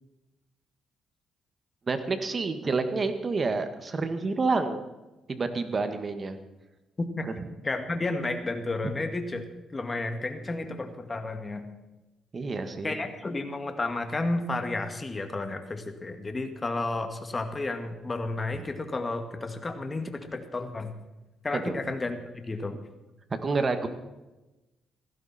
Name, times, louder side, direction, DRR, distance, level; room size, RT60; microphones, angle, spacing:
voice 1, 1.9-4.8 5.3-6.4 12.3-13.0 21.5-21.8 23.4-23.9, right 3 dB, 35° right, 8 dB, 1.8 m, -28 dB
voice 2, 7.0-7.3 7.6-9.4 9.7-11.7 12.8-20.9 21.4-22.8, left 2 dB, 25° left, 6 dB, 2.1 m, -32 dB
17.5 x 15.0 x 4.4 m, 1.1 s
cardioid pair, 90°, 0 cm